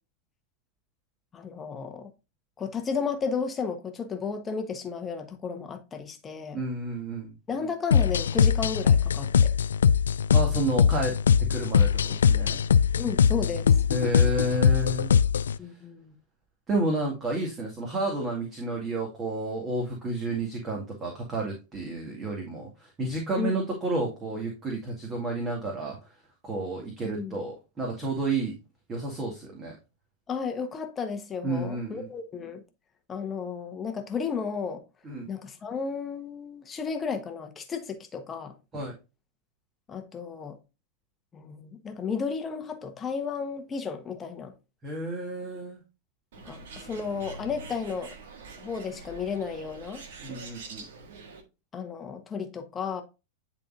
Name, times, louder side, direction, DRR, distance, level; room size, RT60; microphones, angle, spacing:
voice 1, 1.3-2.1 2.6-6.6 7.5-9.5 13.0-13.8 15.6-16.1 23.4-23.6 27.0-27.4 30.3-32.6 33.1-34.8 35.3-38.5 39.9-40.6 41.3-44.5 46.4-48.1 48.6-50.0 51.7-53.0, left 5 dB, 20° left, 1.2 m, -33 dB
voice 2, 6.5-7.3 10.3-11.2 11.5-12.6 13.9-15.1 15.6-15.7 16.7-26.2 26.4-28.6 28.9-29.7 31.4-32.1 35.0-35.3 38.7-38.9 44.8-45.8 50.2-50.9, right 2 dB, 25° right, 2.2 m, -31 dB
sound 1, 7.9-15.6, left 7 dB, 65° left, 0.3 m, -22 dB
Bird, 46.3-51.4, right 4 dB, 55° right, 1.5 m, -44 dB
10.5 x 4.2 x 2.6 m
figure-of-eight pair, 90°, 0 cm